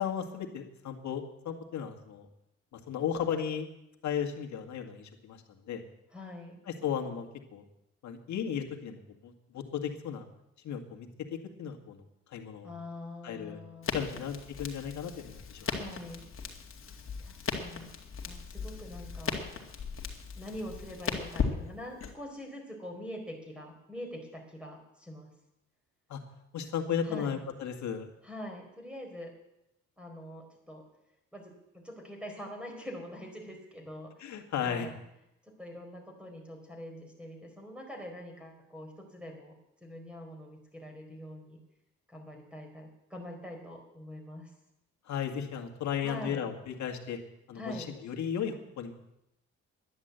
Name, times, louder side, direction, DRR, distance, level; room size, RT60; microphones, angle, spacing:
voice 1, 0.0-2.3 2.7-3.7 4.0-5.8 6.7-7.3 7.5-7.6 8.0-10.3 10.6-12.0 12.3-12.7 13.2-13.6 13.9-15.6 26.1-26.2 26.5-28.1 34.2-34.9 45.1-47.2 47.5-48.9, left 8 dB, 70° left, 3 dB, 2.0 m, -35 dB
voice 2, 6.1-6.6 12.6-14.2 15.6-16.3 17.2-17.9 18.3-19.4 20.4-25.3 27.0-27.4 28.2-29.3 30.0-30.8 31.3-35.0 35.4-39.5 39.8-41.6 42.1-44.5 46.0-46.4 47.5-47.9, left 1 dB, 5° right, 2 dB, 4.2 m, -44 dB
Crackle, 13.8-22.1, left 5 dB, 45° left, 2.2 m, -37 dB
11.0 x 10.5 x 8.1 m, 0.86 s
cardioid pair, 90°, 30 cm